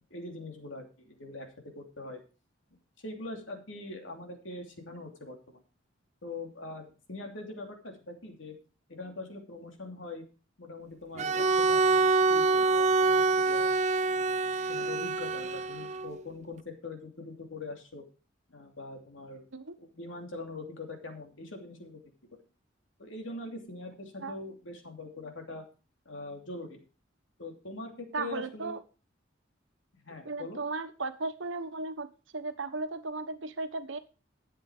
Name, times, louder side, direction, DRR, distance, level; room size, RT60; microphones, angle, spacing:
voice 1, 0.0-1.5 1.7-2.2 3.0-5.6 6.2-8.5 8.9-10.2 10.6-13.7 14.1-14.4 14.7-18.0 18.5-19.4 19.8-22.0 23.0-25.6 26.0-26.8 27.4-28.7 30.0-30.6, left 2 dB, 75° left, 3 dB, 2.8 m, -42 dB
Bowed string instrument, 11.2-16.2, right 3 dB, 35° right, 0.6 m, -26 dB
voice 2, 28.1-28.8 30.2-32.1 32.3-34.0, right 3 dB, 70° right, 10 dB, 1.2 m, -35 dB
12.0 x 7.9 x 5.0 m, 0.35 s
head